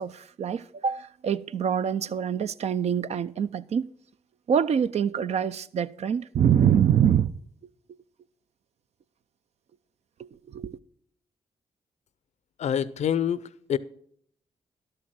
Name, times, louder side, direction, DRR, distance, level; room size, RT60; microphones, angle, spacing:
voice 1, 0.0-3.9 4.5-7.3 10.2-10.8, right 8 dB, 60° right, 0.5 m, -25 dB
voice 2, 12.6-13.8, left 9 dB, 65° left, 0.6 m, -26 dB
11.5 x 6.6 x 6.1 m
supercardioid pair, 50°, 12 cm